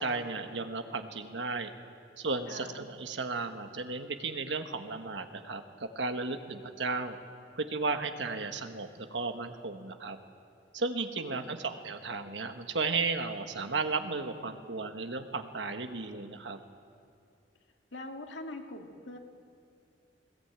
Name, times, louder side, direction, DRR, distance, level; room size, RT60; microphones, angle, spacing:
voice 1, 0.0-1.7 2.2-7.2 7.6-10.2 10.7-16.6, right 3 dB, 85° right, 7 dB, 1.4 m, -34 dB
voice 2, 2.5-2.8 11.2-11.6 17.9-19.2, left 2 dB, 80° left, 3 dB, 2.0 m, -43 dB
20.5 x 18.5 x 8.9 m, 2.3 s
head